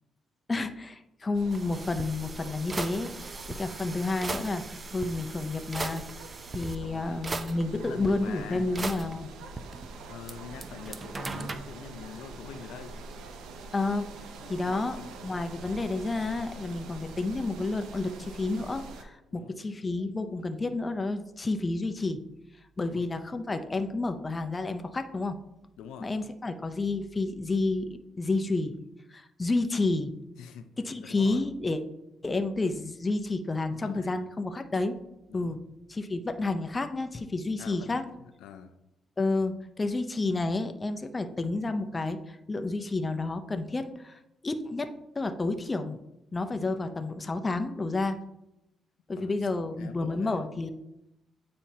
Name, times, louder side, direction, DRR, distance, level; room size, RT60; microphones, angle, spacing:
voice 1, 0.5-6.0 6.5-9.3 13.7-14.1 14.5-22.2 22.8-25.4 26.0-28.7 29.1-30.1 30.8-31.8 32.2-35.0 35.3-35.6 35.9-38.0 39.2-46.0 46.3-48.2 49.1-50.7, left 3 dB, 25° left, 7 dB, 0.5 m, -30 dB
sound 1, 1.3-19.0, right 3 dB, 85° right, 0.6 m, -45 dB
sound 2, 1.5-6.8 7.2-8.1 8.8-10.3 10.6-11.6, right 3 dB, 30° right, 0.5 m, -38 dB
voice 2, 6.8-7.2 7.7-8.7 10.1-13.0 14.4-15.1 19.3-19.5 22.8-23.0 25.8-26.1 30.4-30.7 31.0-31.4 33.8-34.2 35.3-35.6 37.6-38.7 49.1-50.5, left 7 dB, 90° left, 8 dB, 0.5 m, -45 dB
9.0 x 4.3 x 2.8 m, 0.88 s
cardioid pair, 90°, 0 cm